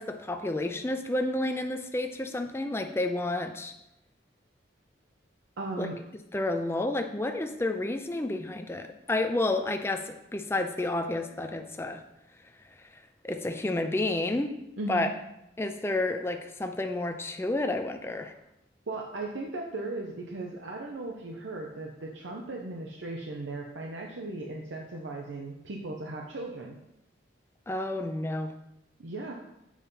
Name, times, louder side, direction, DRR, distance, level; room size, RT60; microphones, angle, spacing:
voice 1, 0.0-3.7 5.8-5.9 6.3-12.0 13.2-14.5 14.9-15.1 15.6-18.3 27.7-28.5, left 2 dB, 15° left, 6 dB, 0.4 m, -30 dB
voice 2, 5.6-6.0 14.8-15.1 18.9-26.8 29.0-29.3, right 2 dB, 85° right, 0 dB, 0.8 m, -37 dB
7.4 x 4.1 x 5.4 m, 0.85 s
head